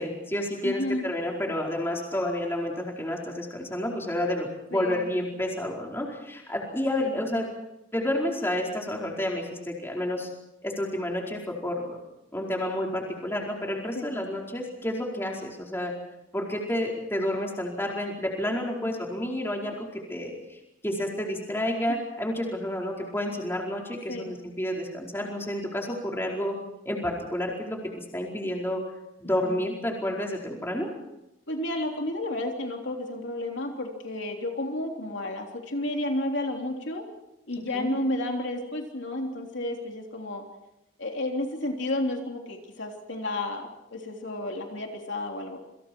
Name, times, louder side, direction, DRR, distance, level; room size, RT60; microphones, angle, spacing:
voice 1, 0.0-7.5 7.9-10.3 10.6-12.0 12.3-15.9 16.3-26.5 26.8-28.8 29.2-30.9 37.7-37.9, left 1 dB, 10° left, -1 dB, 4.7 m, -30 dB
voice 2, 0.6-1.0 4.7-5.1 7.0-7.3 14.0-14.2 18.7-18.9 24.1-24.3 29.4-29.5 31.5-37.0 37.5-40.4 41.0-45.6, left 1 dB, 60° left, 1 dB, 3.4 m, -32 dB
28.0 x 27.0 x 4.7 m, 0.90 s
head